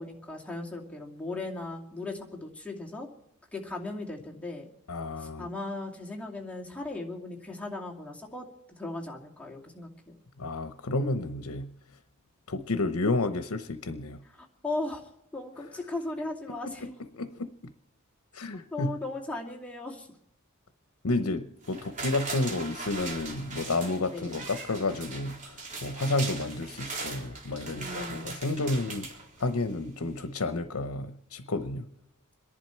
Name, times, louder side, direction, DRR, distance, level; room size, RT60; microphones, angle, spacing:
voice 1, 0.0-3.1 3.5-4.7 5.2-8.5 8.8-10.2 14.4-16.9 18.7-20.1 24.1-24.4 27.7-28.3, left 2 dB, 5° left, -2 dB, 2.4 m, -37 dB
voice 2, 4.9-5.5 10.4-11.7 12.5-14.2 16.8-16.9 17.1-17.5 18.3-18.9 21.0-29.1 29.4-31.9, left 2 dB, 75° left, 10 dB, 0.9 m, -31 dB
sound 1, 21.6-29.8 30.2-30.3, right 3 dB, 35° right, 3.7 m, -40 dB
27.0 x 11.0 x 4.5 m, 0.77 s
head